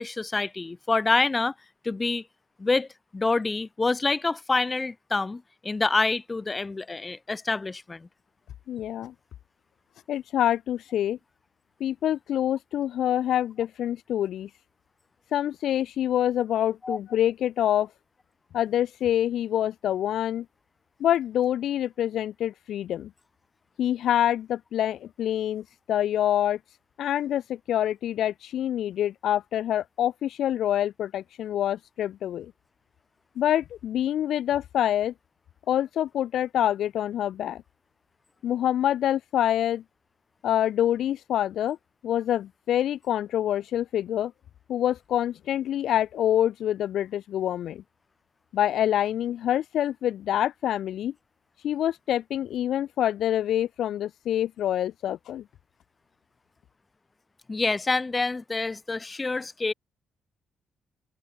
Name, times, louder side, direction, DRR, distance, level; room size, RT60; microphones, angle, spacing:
voice 1, 0.0-1.5 1.8-2.2 2.6-2.9 3.1-8.1 16.8-17.0 57.5-59.7, left 3 dB, 25° left, 0.8 m, -27 dB
voice 2, 8.7-9.1 10.1-11.2 11.8-14.5 15.3-17.9 18.5-20.5 21.0-23.1 23.8-26.6 27.0-32.5 33.4-35.1 35.7-37.6 38.4-39.8 40.4-41.8 42.0-44.3 44.7-47.8 48.5-51.1 51.6-55.4, left 11 dB, 75° left, 0.5 m, -26 dB
cardioid pair, 90°, 0 cm